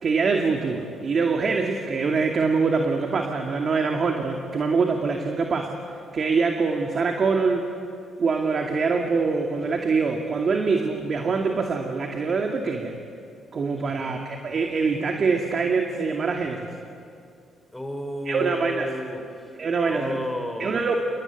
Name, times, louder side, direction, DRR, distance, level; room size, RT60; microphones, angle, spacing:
voice 1, 0.0-5.8 6.1-7.6 8.2-12.9 13.5-16.7 18.3-18.9 19.6-20.3 20.6-21.0, right 4 dB, 50° right, 3 dB, 2.3 m, -24 dB
voice 2, 13.8-14.1 17.7-19.2 19.8-20.7, left 1 dB, 5° left, 4 dB, 4.5 m, -33 dB
28.0 x 21.0 x 9.3 m, 2.5 s
cardioid pair, 90°, 0 cm